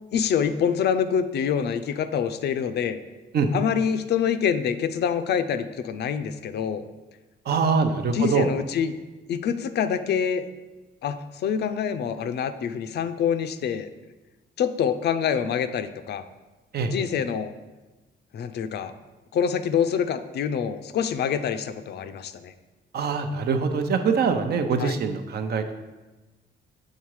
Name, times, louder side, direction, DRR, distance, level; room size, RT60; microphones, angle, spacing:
voice 1, 0.1-3.0 3.5-6.8 8.1-8.9 9.3-10.4 11.0-13.9 14.6-16.2 16.8-17.5 18.3-18.9 19.3-22.5 24.8-25.0, left 7 dB, 65° left, 10 dB, 0.5 m, -26 dB
voice 2, 7.5-8.5 16.7-16.9 22.9-25.7, right 5 dB, 60° right, 7 dB, 0.7 m, -23 dB
7.4 x 3.8 x 4.7 m, 1.2 s
cardioid pair, 110°, 19 cm